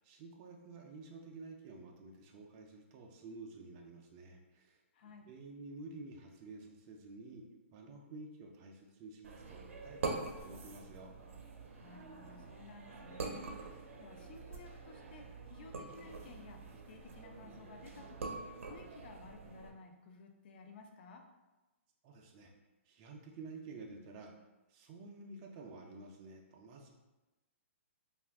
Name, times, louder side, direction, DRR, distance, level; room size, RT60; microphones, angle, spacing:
voice 1, 0.0-4.8 5.3-11.1 22.0-22.5 22.9-24.3 24.7-26.9, right 3 dB, 25° right, 1 dB, 0.4 m, -51 dB
voice 2, 4.9-5.3 11.8-13.5 14.0-21.2, left 4 dB, 45° left, 3 dB, 0.4 m, -55 dB
sound 1, 9.2-19.7, right 3 dB, 75° right, 0.6 m, -45 dB
2.6 x 2.4 x 3.4 m, 1.1 s
hypercardioid pair, 160°, 7 cm